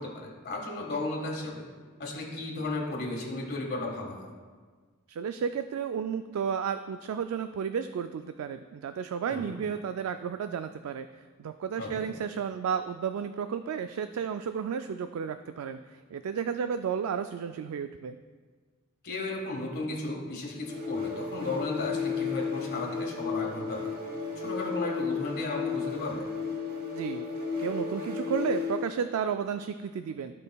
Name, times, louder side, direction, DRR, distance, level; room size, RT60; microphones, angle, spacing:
voice 1, 0.0-1.6 2.0-4.3 9.3-9.5 11.8-12.1 19.0-23.9 24.4-26.3, left 2 dB, 50° left, -1 dB, 1.5 m, -34 dB
voice 2, 5.1-11.1 11.4-18.2 26.9-27.2 27.6-30.4, right 7 dB, 75° right, 9 dB, 0.3 m, -32 dB
sound 1, 20.6-29.0, left 5 dB, 40° right, 1.3 m, -33 dB
16.0 x 5.4 x 2.3 m, 1.5 s
head